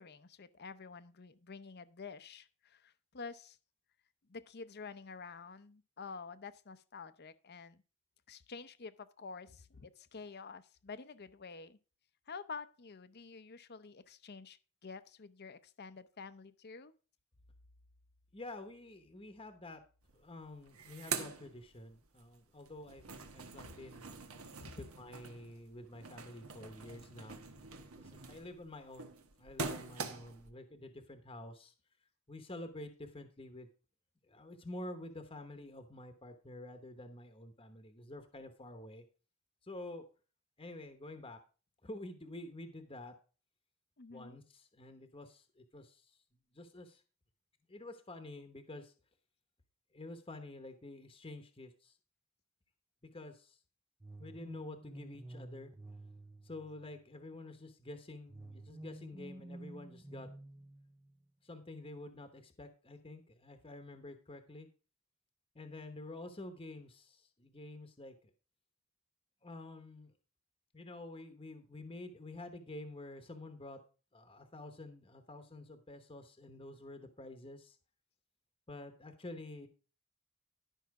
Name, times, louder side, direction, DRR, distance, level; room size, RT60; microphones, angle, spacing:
voice 1, 0.0-3.6 4.3-7.8 8.3-11.8 12.3-16.9 24.6-24.8 44.0-44.4, left 4 dB, 45° left, 13 dB, 0.7 m, -49 dB
voice 2, 18.3-19.8 20.1-24.2 24.8-27.4 28.0-29.1 29.4-31.7 32.3-33.7 34.3-39.0 39.6-40.1 40.6-41.4 41.8-43.1 44.1-46.2 46.5-47.0 47.7-48.9 49.9-52.0 53.1-53.6 54.2-55.7 56.4-60.5 61.4-64.7 65.5-68.3 69.4-70.1 70.7-73.8 74.1-77.8 78.7-79.7, left 2 dB, 25° left, 7 dB, 1.0 m, -49 dB
sound 1, 20.1-20.2 20.5-22.2 22.6-30.5, right 5 dB, 75° right, 1.2 m, -44 dB
sound 2, 54.0-57.1 58.3-61.2, right 1 dB, 10° right, 0.4 m, -51 dB
11.5 x 5.7 x 4.8 m, 0.35 s
head